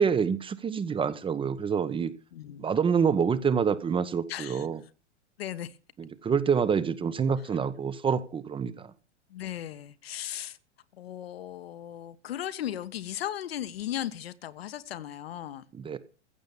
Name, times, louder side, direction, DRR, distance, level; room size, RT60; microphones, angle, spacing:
voice 1, 0.0-2.1 2.6-4.8 6.0-8.9 15.7-16.0, right 6 dB, 15° right, 1.0 m, -27 dB
voice 2, 2.3-2.7 4.3-4.6 5.4-5.8 9.3-10.6 10.9-15.6, left 11 dB, 60° left, 1.3 m, -36 dB
15.5 x 7.8 x 7.1 m
figure-of-eight pair, 100°, 34 cm